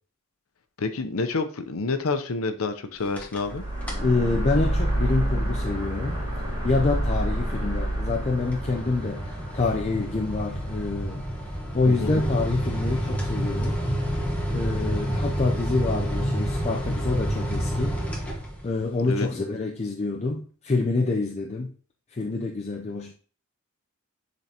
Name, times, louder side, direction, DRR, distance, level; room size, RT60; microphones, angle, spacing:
voice 1, 0.8-3.6 11.8-12.1 19.1-19.3, left 3 dB, 80° left, 0.7 m, -28 dB
sound 1, 3.0-3.5 3.8-4.2 4.6-18.9, equal, 5° left, 1.1 m, -30 dB
sound 2, 3.4-11.7, right 1 dB, 20° right, 2.1 m, -29 dB
voice 2, 4.0-6.2 6.6-11.3 11.7-13.8 14.5-18.0 18.6-21.7 22.1-23.1, left 3 dB, 30° left, 0.5 m, -27 dB
10.5 x 3.9 x 2.8 m
head